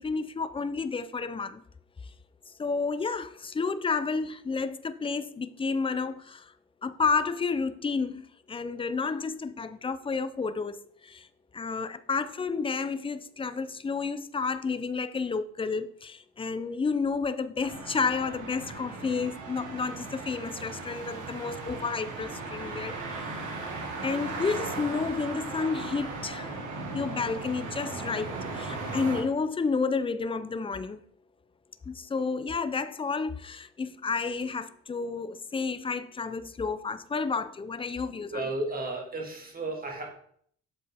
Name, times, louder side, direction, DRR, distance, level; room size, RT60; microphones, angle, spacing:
voice 1, 0.0-1.6 2.6-6.5 6.8-11.3 11.5-23.6 24.0-26.6 26.9-31.0 31.9-38.5, left 4 dB, 20° left, 0.4 m, -31 dB
sound 1, 17.6-29.2, right 3 dB, 75° right, 1.7 m, -37 dB
voice 2, 38.3-40.1, right 2 dB, 30° right, 1.8 m, -33 dB
7.5 x 4.4 x 3.4 m
cardioid pair, 90°, 30 cm